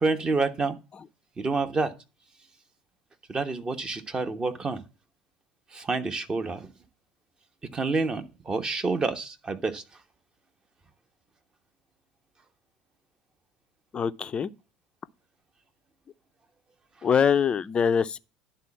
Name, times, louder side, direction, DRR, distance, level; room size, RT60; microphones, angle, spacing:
voice 1, 0.0-0.8 1.4-1.9 3.3-4.8 5.9-6.6 7.7-9.8, right 3 dB, 25° right, 1.2 m, -28 dB
voice 2, 13.9-14.5 17.0-18.2, left 7 dB, 30° left, 0.5 m, -23 dB
10.5 x 4.1 x 7.2 m
hypercardioid pair, 70°, 3 cm